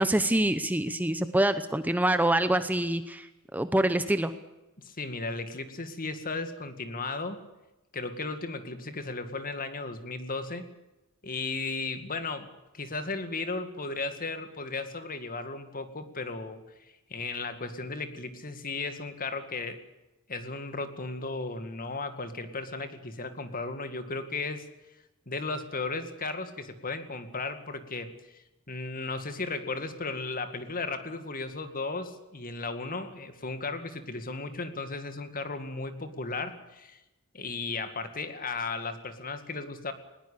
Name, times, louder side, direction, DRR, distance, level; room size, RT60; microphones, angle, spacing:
voice 1, 0.0-3.3 3.5-4.3, right 1 dB, 10° right, 11 dB, 0.8 m, -25 dB
voice 2, 4.8-7.4 7.9-10.6 11.2-16.6 17.1-19.8 20.3-24.7 25.3-37.0 37.3-39.9, left 3 dB, 40° left, 9 dB, 2.1 m, -35 dB
20.5 x 19.0 x 8.5 m, 1.0 s
head